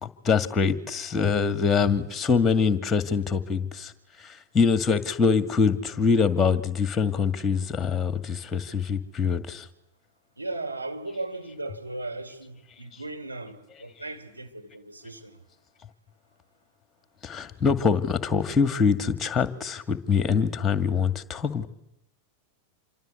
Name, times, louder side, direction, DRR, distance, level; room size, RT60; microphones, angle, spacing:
voice 1, 0.0-3.9 4.2-9.7 17.2-21.7, left 5 dB, 15° left, 2.1 m, -24 dB
voice 2, 10.4-15.4, right 2 dB, 85° right, 3.4 m, -37 dB
27.0 x 25.0 x 8.3 m
figure-of-eight pair, 90°, 0 cm